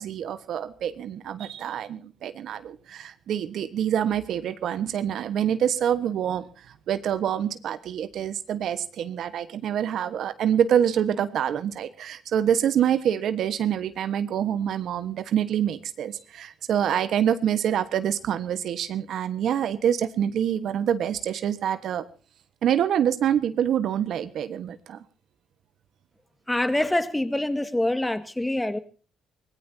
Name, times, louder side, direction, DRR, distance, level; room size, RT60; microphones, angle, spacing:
voice 1, 0.0-22.0 22.6-25.0, right 9 dB, 70° right, 1.3 m, -26 dB
voice 2, 26.5-28.8, left 1 dB, 10° left, 1.9 m, -25 dB
24.5 x 19.0 x 2.8 m
cardioid pair, 90°, 0 cm